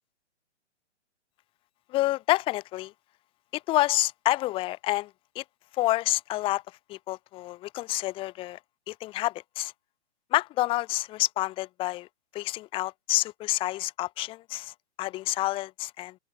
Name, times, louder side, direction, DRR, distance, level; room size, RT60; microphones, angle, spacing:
voice 1, 1.9-2.9 3.5-5.1 5.4-5.5 5.7-6.6 6.9-8.6 8.9-9.7 10.3-12.1 12.3-16.2, left 17 dB, 15° left, 0.6 m, -28 dB
open air
hypercardioid pair, 130°, 35 cm